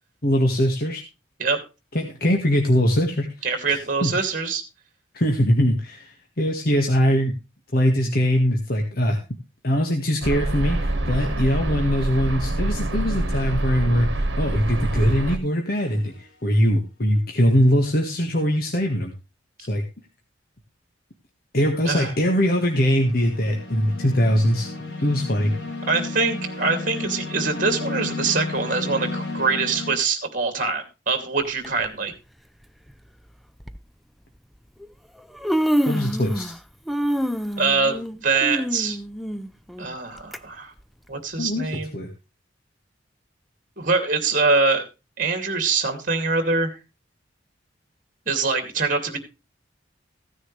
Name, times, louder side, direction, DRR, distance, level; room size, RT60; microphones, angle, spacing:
voice 1, 0.2-1.0 1.9-3.3 3.7-4.1 5.1-7.3 7.7-9.2 9.6-19.1 19.6-19.8 21.5-24.7 25.0-25.5 35.8-36.5 41.4-42.1, equal, 50° left, 3 dB, 1.7 m, -22 dB
voice 2, 3.4-4.6 21.8-22.1 25.9-32.1 37.6-39.0 39.8-40.7 41.1-41.9 43.8-44.8 45.2-46.7 48.3-49.2, right 4 dB, 45° right, 7 dB, 2.6 m, -24 dB
sound 1, 10.2-15.4, right 1 dB, 65° right, 1.7 m, -25 dB
sound 2, 15.9-16.2 22.1-30.0, left 2 dB, 70° left, 3.2 m, -33 dB
Human voice, 31.6-31.9 32.9-33.0 33.6-33.8 34.8-34.9 35.2-36.6 36.9-40.4 40.8-40.9 41.7-41.8, equal, ahead, 0.5 m, -26 dB
15.5 x 9.8 x 3.3 m, 0.28 s
head